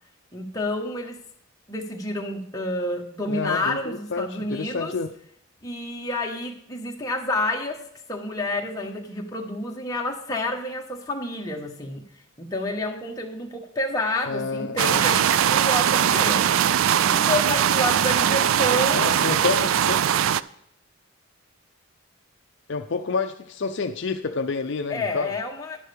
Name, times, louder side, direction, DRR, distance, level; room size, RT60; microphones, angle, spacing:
voice 1, 0.3-1.2 1.7-4.9 5.6-7.8 8.1-12.0 12.4-16.5 17.1-19.1 24.9-25.8, left 1 dB, 15° left, 1 dB, 1.1 m, -29 dB
voice 2, 3.3-5.1 14.3-15.1 18.9-20.0 22.7-25.3, left 4 dB, 55° left, 7 dB, 0.5 m, -28 dB
sound 1, 14.8-20.4, right 9 dB, 70° right, 0.3 m, -20 dB
11.0 x 11.0 x 3.4 m, 0.71 s
head